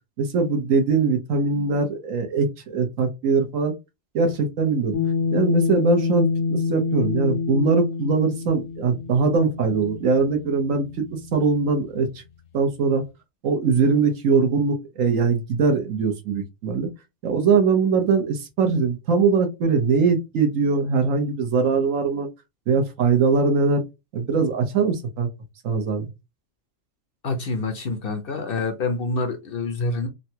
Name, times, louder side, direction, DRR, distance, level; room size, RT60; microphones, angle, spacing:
voice 1, 0.2-3.7 4.1-5.0 5.3-12.1 12.5-13.1 13.4-16.9 17.2-22.3 22.7-23.8 24.1-25.3 25.6-26.1, right 4 dB, 80° right, 1.3 m, -21 dB
sound 1, 4.9-11.6, left 4 dB, 90° left, 1.3 m, -27 dB
voice 2, 27.2-30.1, left 3 dB, 55° left, 0.7 m, -27 dB
3.8 x 2.2 x 2.8 m
omnidirectional pair, 1.3 m